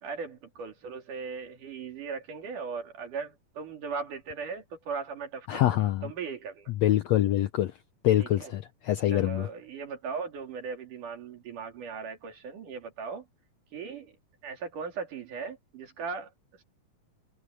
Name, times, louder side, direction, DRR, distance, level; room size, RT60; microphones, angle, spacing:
voice 1, 0.0-6.7 8.2-8.5 9.1-13.3 13.7-14.2 14.4-16.6, right 5 dB, 65° right, 4.3 m, -38 dB
voice 2, 5.5-6.1 6.8-7.7 8.0-9.5, left 13 dB, 80° left, 1.5 m, -25 dB
omnidirectional pair, 4.0 m